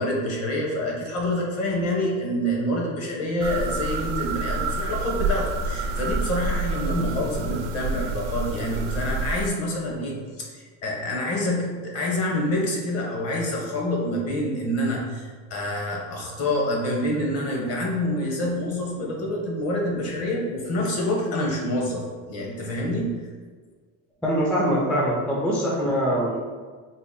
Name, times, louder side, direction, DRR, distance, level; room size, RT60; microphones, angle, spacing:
voice 1, 0.0-23.1, left 1 dB, 45° left, -1 dB, 0.9 m, -27 dB
sound 1, 3.4-9.5, right 3 dB, 50° right, 0.5 m, -28 dB
voice 2, 24.2-26.4, equal, 5° left, -4 dB, 0.4 m, -23 dB
3.8 x 2.1 x 3.6 m, 1.5 s
supercardioid pair, 125°, 34 cm